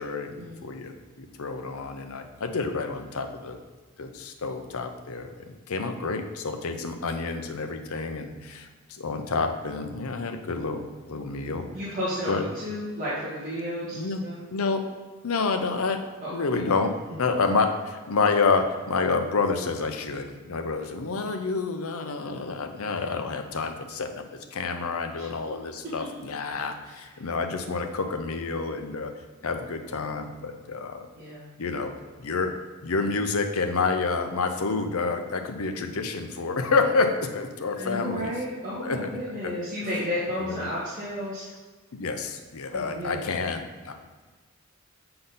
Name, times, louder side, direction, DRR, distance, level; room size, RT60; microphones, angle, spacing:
voice 1, 0.0-3.6 4.0-11.7 12.3-12.4 13.9-14.3 14.5-14.9 15.2-16.0 16.3-29.1 29.4-31.1 31.6-32.6 32.8-38.3 38.8-39.1 39.4-39.5 40.4-40.7 41.9-43.9, left 4 dB, 70° left, 6 dB, 0.6 m, -29 dB
voice 2, 11.7-14.4 16.2-16.4 25.2-25.3 26.8-26.9 31.2-31.5 37.7-41.4 42.7-43.3, equal, 35° right, -10 dB, 1.5 m, -32 dB
7.8 x 3.9 x 4.0 m, 1.4 s
head